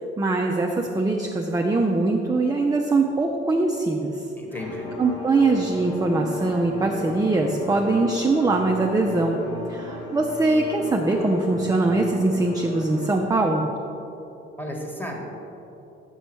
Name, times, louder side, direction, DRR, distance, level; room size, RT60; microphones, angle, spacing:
voice 1, 0.2-4.2 5.0-9.4 9.7-13.7, right 2 dB, 10° right, 1 dB, 0.5 m, -22 dB
voice 2, 4.4-5.0 14.6-15.2, left 1 dB, 5° left, 1 dB, 1.3 m, -33 dB
sound 1, 4.5-13.1, left 2 dB, 85° left, 0.9 m, -35 dB
6.3 x 5.4 x 4.5 m, 2.9 s
hypercardioid pair, 50°, 30 cm